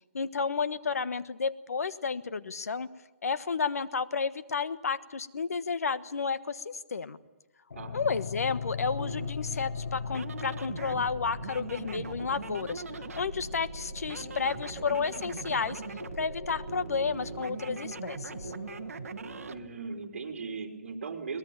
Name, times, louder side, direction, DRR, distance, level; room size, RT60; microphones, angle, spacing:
voice 1, 0.1-2.9 3.2-7.2 7.9-12.8 13.1-15.8 16.2-18.5, left 5 dB, 80° left, 14 dB, 1.3 m, -31 dB
sound 1, 7.7-19.7, left 6 dB, 60° left, 1.2 m, -41 dB
voice 2, 7.7-8.0 19.5-21.4, right 4 dB, 50° right, 4 dB, 3.6 m, -38 dB
sound 2, 8.8-19.6, right 5 dB, 75° right, 1.2 m, -41 dB
23.0 x 20.0 x 8.9 m, 1.0 s
hypercardioid pair, 165°, 8 cm